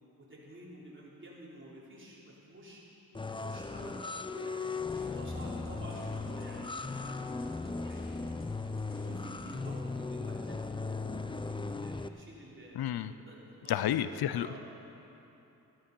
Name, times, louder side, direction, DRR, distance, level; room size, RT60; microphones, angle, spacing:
voice 1, 0.2-2.8 3.2-4.6 4.9-7.3 7.7-8.4 8.7-12.8 13.3-13.8 14.1-14.6, right 1 dB, 30° right, -5 dB, 3.8 m, -50 dB
sound 1, 3.1-12.1, left 3 dB, 15° left, 0.4 m, -37 dB
sound 2, 4.7-9.9, equal, 35° left, 3.3 m, -54 dB
voice 2, 12.8-13.1 13.7-14.6, left 11 dB, 80° left, 13 dB, 0.6 m, -31 dB
14.0 x 11.5 x 5.4 m, 2.9 s
cardioid pair, 75°, 37 cm